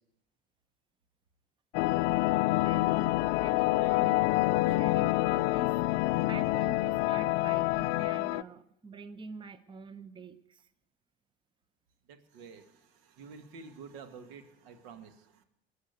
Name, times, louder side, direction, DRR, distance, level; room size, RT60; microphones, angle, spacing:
sound 1, 1.7-8.4, left 19 dB, 60° left, 0.5 m, -27 dB
voice 1, 2.6-4.3 4.6-5.8 6.3-10.7, right 3 dB, 15° right, 13 dB, 0.8 m, -46 dB
voice 2, 12.1-15.4, right 5 dB, 65° right, 8 dB, 1.8 m, -49 dB
21.0 x 7.8 x 8.3 m, 0.83 s
hypercardioid pair, 75°, 31 cm